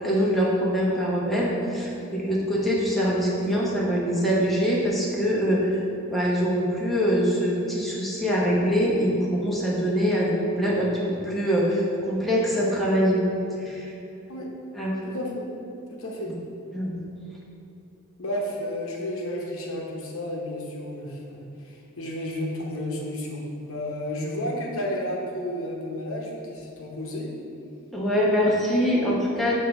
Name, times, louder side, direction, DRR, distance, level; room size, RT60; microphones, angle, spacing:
voice 1, 0.0-5.8 6.1-13.2 13.6-13.9 14.7-14.9 16.7-17.1 27.9-29.6, equal, ahead, -6 dB, 1.0 m, -24 dB
voice 2, 15.0-15.5 15.9-16.4 18.2-27.3 28.9-29.0, left 1 dB, 65° left, -1 dB, 0.9 m, -32 dB
7.3 x 2.7 x 5.8 m, 2.8 s
head